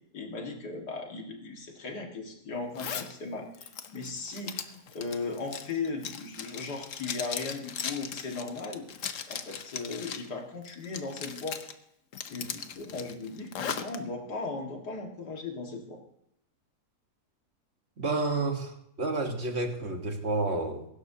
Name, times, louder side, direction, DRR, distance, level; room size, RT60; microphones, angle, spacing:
voice 1, 0.1-8.9 9.3-11.6 12.3-16.0, left 3 dB, 80° left, 1 dB, 2.6 m, -37 dB
Zipper (clothing), 2.7-3.1 3.5-10.3 10.6-11.7 12.1-14.0, left 7 dB, 55° left, 1.2 m, -38 dB
voice 2, 18.0-20.9, right 2 dB, 40° right, 3 dB, 1.7 m, -30 dB
22.5 x 12.0 x 2.9 m, 0.77 s
omnidirectional pair, 1.7 m